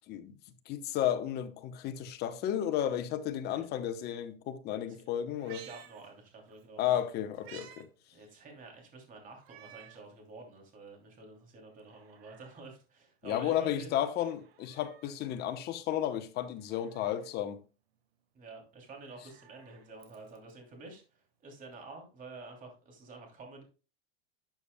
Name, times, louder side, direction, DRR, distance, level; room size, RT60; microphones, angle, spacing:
voice 1, 0.7-5.6 6.8-7.9 13.2-17.6, left 11 dB, 35° left, 0.9 m, -33 dB
Meow, 5.3-6.6 7.0-7.9 8.2-8.3 9.4-10.1 10.6-10.7 11.7-12.7 14.2-15.2 16.5-17.4 18.8-20.5 21.7-21.8, right 10 dB, 75° right, 1.5 m, -55 dB
voice 2, 5.5-6.9 8.1-14.1 18.3-23.6, right 3 dB, 25° right, 2.9 m, -49 dB
12.0 x 6.9 x 2.2 m
supercardioid pair, 140°, 31 cm